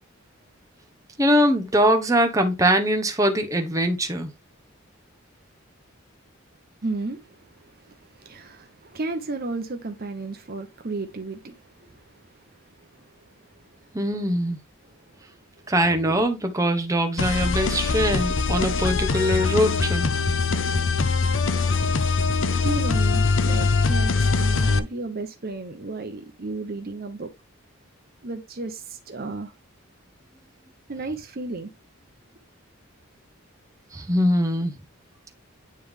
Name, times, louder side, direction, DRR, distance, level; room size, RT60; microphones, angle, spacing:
voice 1, 1.2-4.3 13.9-14.6 15.7-20.1 33.9-34.7, equal, 15° right, 1.0 m, -22 dB
voice 2, 6.8-12.3 12.8-12.9 15.1-15.2 22.6-27.3 28.2-29.5 30.9-31.7, right 3 dB, 45° right, 0.8 m, -33 dB
sound 1, 17.2-24.8, left 4 dB, 60° left, 0.6 m, -22 dB
9.4 x 3.3 x 3.5 m
head